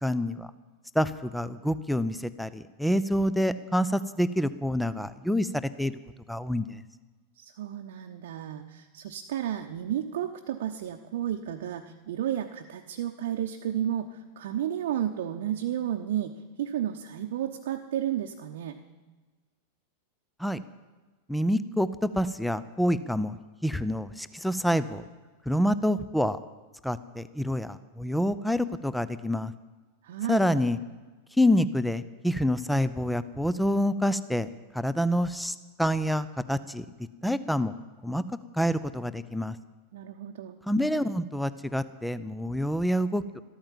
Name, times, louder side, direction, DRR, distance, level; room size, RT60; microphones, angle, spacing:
voice 1, 0.0-0.5 0.9-5.9 6.3-6.8 20.4-20.6 21.3-23.4 23.6-25.0 25.5-26.4 26.8-29.5 30.3-30.8 31.4-34.5 34.7-36.9 37.2-37.7 38.0-38.2 38.5-39.6 40.7-43.4, equal, ahead, 15 dB, 0.6 m, -27 dB
voice 2, 7.4-18.8 30.0-30.4 39.9-40.6, right 10 dB, 55° right, 4 dB, 0.9 m, -32 dB
13.5 x 13.5 x 7.4 m, 1.3 s
figure-of-eight pair, 90°, 0 cm